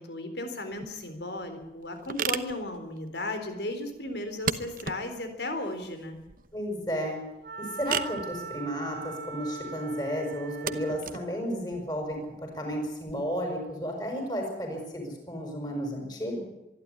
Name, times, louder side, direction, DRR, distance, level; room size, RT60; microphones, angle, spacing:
voice 1, 0.0-6.2, left 1 dB, 85° left, 7 dB, 4.0 m, -35 dB
sound 1, 0.7-13.1, right 6 dB, 50° right, 1.0 m, -38 dB
voice 2, 6.5-7.2 7.6-16.4, equal, 25° left, 2 dB, 6.5 m, -33 dB
Wind instrument woodwind instrument, 7.4-11.1, right 4 dB, 80° right, 1.4 m, -40 dB
24.5 x 12.0 x 9.8 m, 0.94 s
head